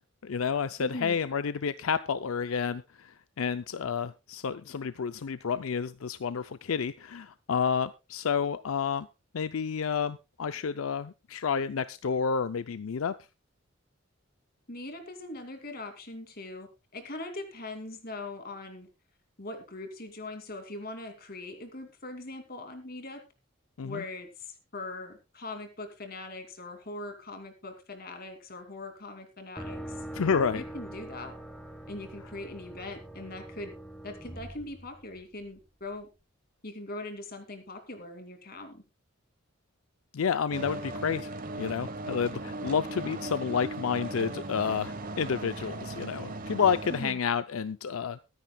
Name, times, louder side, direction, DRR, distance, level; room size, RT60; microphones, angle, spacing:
voice 1, 0.2-9.1 9.3-13.1 23.8-24.0 30.1-30.6 40.1-48.2, left 6 dB, 80° left, 12 dB, 0.5 m, -30 dB
voice 2, 0.8-1.2 14.7-18.9 19.4-23.2 23.8-30.0 30.5-31.3 31.9-33.7 34.0-36.1 36.6-38.8 46.9-47.2, left 2 dB, 45° left, 6 dB, 2.6 m, -41 dB
sound 1, 29.6-35.5, right 1 dB, 5° left, 1.2 m, -43 dB
sound 2, 40.5-47.1, right 2 dB, 40° right, 1.1 m, -38 dB
22.5 x 10.0 x 2.3 m, 0.27 s
head